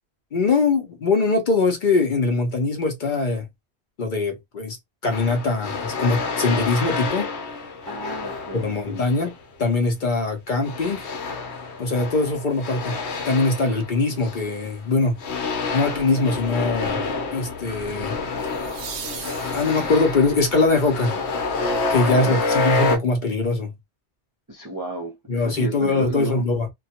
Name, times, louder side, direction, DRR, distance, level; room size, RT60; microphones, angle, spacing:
voice 1, 0.3-3.5 4.0-4.8 5.0-7.3 8.5-9.3 9.6-11.1 11.8-13.0 13.3-15.2 15.7-17.0 17.3-18.2 19.5-21.2 21.9-23.7 25.3-26.7, left 3 dB, 50° left, 0.7 m, -22 dB
sound 1, 5.1-9.3 10.6-14.8 15.2-23.0, left 4 dB, 80° left, 1.0 m, -28 dB
voice 2, 7.9-9.0 22.2-22.5 24.5-26.4, right 2 dB, 25° right, 0.4 m, -33 dB
sound 2, 15.3-15.7 18.4-20.3 23.1-23.2, right 7 dB, 65° right, 0.7 m, -38 dB
2.3 x 2.1 x 2.7 m
omnidirectional pair, 1.1 m